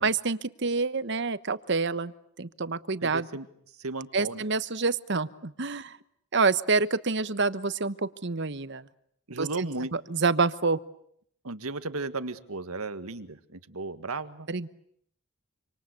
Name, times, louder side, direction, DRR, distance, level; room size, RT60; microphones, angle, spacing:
voice 1, 0.0-2.1 2.4-3.3 4.1-6.0 6.3-8.9 9.4-9.7 9.9-10.8 14.5-14.7, right 4 dB, 55° right, 14 dB, 1.1 m, -27 dB
voice 2, 3.0-3.5 3.8-4.4 9.3-9.9 11.4-14.5, right 3 dB, 90° right, 11 dB, 1.8 m, -35 dB
27.0 x 26.5 x 8.3 m, 0.69 s
head